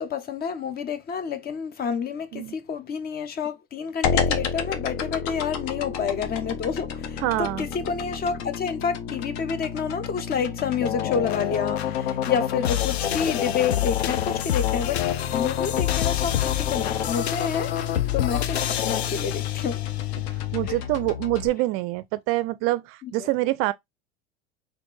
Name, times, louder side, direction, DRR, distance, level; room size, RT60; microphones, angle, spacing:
voice 1, 0.0-19.9 20.7-20.8 23.0-23.3, left 6 dB, 30° left, 0.7 m, -29 dB
sound 1, 4.0-21.5, left 7 dB, 60° left, 0.9 m, -31 dB
voice 2, 7.2-7.7 20.5-23.7, right 18 dB, 45° right, 0.4 m, -25 dB
sound 2, 10.8-20.0, left 11 dB, 85° left, 0.5 m, -27 dB
4.1 x 2.5 x 3.2 m
hypercardioid pair, 90°, 31 cm